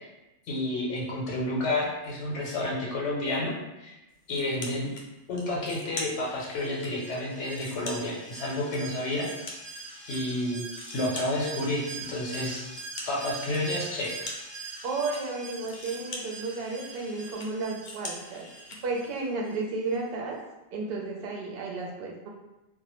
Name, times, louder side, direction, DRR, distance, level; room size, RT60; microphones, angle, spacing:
voice 1, 0.5-3.9 4.3-4.9 5.3-9.3 10.0-10.6 10.9-12.6 13.1-14.3, left 1 dB, 75° left, -3 dB, 0.9 m, -30 dB
sound 1, 4.3-5.0 5.4-6.9 7.3-10.2 10.5-18.8, left 2 dB, 60° left, 0.5 m, -43 dB
Alarm, 6.1-19.6 19.9-20.0, right 4 dB, 20° right, 0.4 m, -44 dB
voice 2, 14.8-18.5 18.8-20.4 20.7-22.3, right 3 dB, 60° right, -1 dB, 0.7 m, -33 dB
2.2 x 2.0 x 2.9 m, 0.99 s
omnidirectional pair, 1.2 m